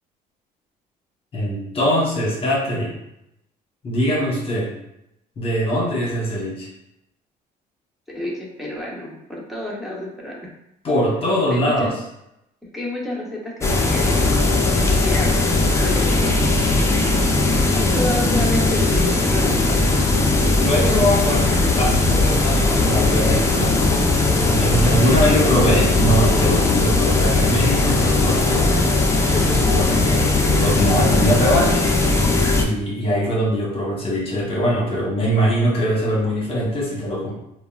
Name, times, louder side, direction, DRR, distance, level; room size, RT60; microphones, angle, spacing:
voice 1, 1.3-2.9 3.8-4.7 5.4-6.7 10.8-11.9 20.6-21.5 21.8-23.8 24.5-28.8 29.3-31.8 32.6-37.3, equal, 35° left, -4 dB, 0.9 m, -22 dB
voice 2, 8.1-10.5 11.5-11.9 12.7-14.5 14.8-16.3 17.7-19.6, left 1 dB, ahead, -4 dB, 0.7 m, -30 dB
sound 1, 13.6-32.6, left 2 dB, 15° left, 0.3 m, -18 dB
sound 2, 15.8-27.1, right 4 dB, 55° right, 0.9 m, -35 dB
3.4 x 2.1 x 2.3 m, 0.83 s
cardioid pair, 110°, 17 cm